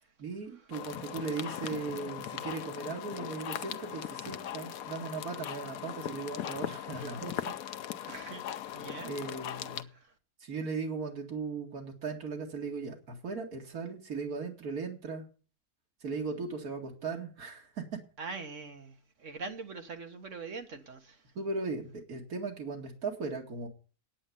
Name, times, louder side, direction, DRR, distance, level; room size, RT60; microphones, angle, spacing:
voice 1, 0.2-7.5 8.1-8.2 9.0-9.9 10.4-15.3 16.0-17.8 21.4-23.7, right 4 dB, 75° right, 2.5 m, -38 dB
sound 1, 0.7-9.8, left 10 dB, 70° left, 1.2 m, -39 dB
voice 2, 8.1-8.4 8.7-9.1 18.2-21.2, right 4 dB, 55° right, 1.8 m, -42 dB
10.0 x 9.0 x 7.0 m
omnidirectional pair, 1.6 m